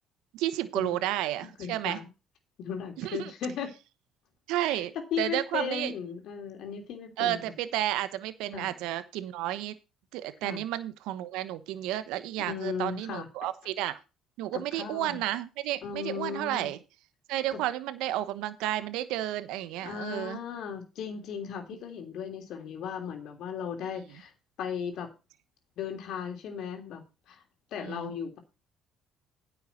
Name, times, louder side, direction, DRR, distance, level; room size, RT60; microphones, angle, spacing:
voice 1, 0.3-2.0 3.0-3.3 4.5-5.9 7.2-9.8 10.1-14.0 14.4-16.8 17.3-20.4 27.8-28.1, right 14 dB, 75° right, 14 dB, 1.0 m, -32 dB
voice 2, 1.4-2.0 2.6-3.7 4.6-4.8 5.1-7.4 8.5-8.7 10.4-10.6 12.4-13.3 14.5-15.2 15.8-16.7 17.5-17.6 19.8-24.3 24.6-25.1 25.8-27.0 27.3-27.4 27.7-28.4, left 7 dB, 70° left, 5 dB, 3.1 m, -36 dB
9.8 x 6.9 x 5.7 m, 0.29 s
hypercardioid pair, 65°, 0 cm